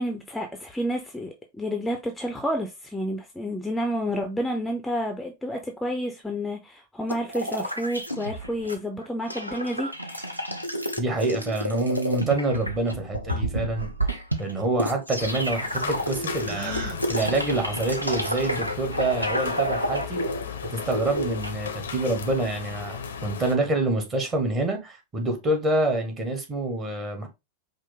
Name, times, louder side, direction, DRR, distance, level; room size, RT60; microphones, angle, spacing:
voice 1, 0.0-10.4, equal, 5° left, 0.6 m, -30 dB
sound 1, 7.1-8.8 9.0-21.5, equal, 90° right, 0.6 m, -30 dB
voice 2, 11.0-20.2 20.7-27.3, right 2 dB, 25° right, 1.3 m, -27 dB
sound 2, 15.2-23.5, left 6 dB, 65° left, 0.6 m, -36 dB
Gasp, 16.4-17.0, right 1 dB, 60° right, 1.7 m, -33 dB
5.1 x 2.0 x 3.9 m
figure-of-eight pair, 90°, 0 cm